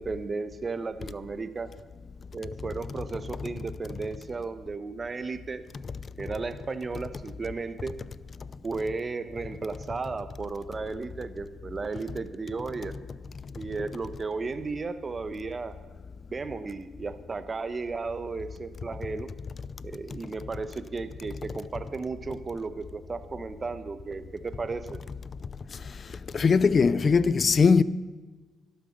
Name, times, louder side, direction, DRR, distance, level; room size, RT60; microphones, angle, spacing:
voice 1, 0.0-1.7 2.3-5.6 6.2-7.9 8.6-12.9 13.6-15.7 16.3-19.3 19.8-25.0, right 4 dB, 35° right, 1.0 m, -34 dB
voice 2, 26.3-27.8, left 5 dB, 40° left, 0.5 m, -20 dB
13.0 x 12.0 x 6.6 m
cardioid pair, 90°, 0 cm